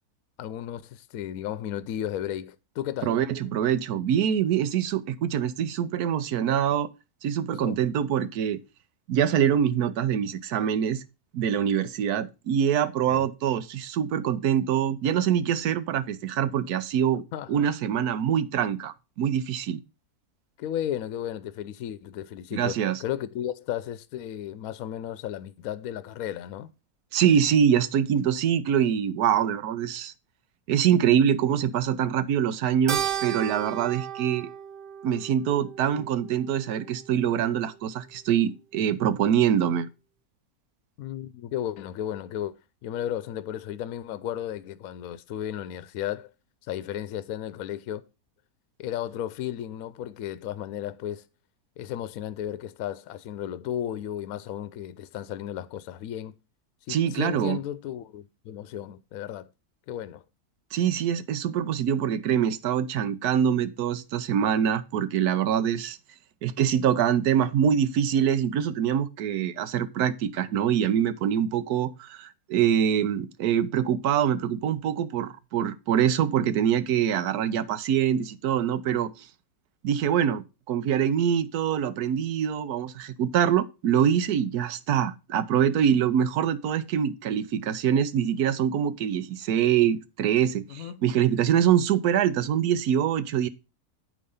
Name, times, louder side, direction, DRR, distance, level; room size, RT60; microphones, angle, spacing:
voice 1, 0.4-3.2 7.5-7.8 13.0-13.3 17.3-17.6 20.6-26.7 41.0-42.5 42.8-46.3 46.7-48.0 48.8-51.2 51.8-56.4 56.9-59.5 59.9-60.2 90.7-91.0, left 11 dB, 75° left, 1.0 m, -34 dB
voice 2, 3.0-6.9 7.2-8.6 9.1-11.0 11.3-17.2 17.5-19.8 22.5-23.0 27.1-30.1 30.7-34.5 35.0-39.9 56.9-57.6 60.7-66.0 66.4-79.3 79.8-93.5, right 9 dB, 80° right, 1.2 m, -24 dB
Keyboard (musical), 32.9-37.5, right 9 dB, 55° right, 0.6 m, -35 dB
8.6 x 5.1 x 5.4 m
omnidirectional pair, 1.6 m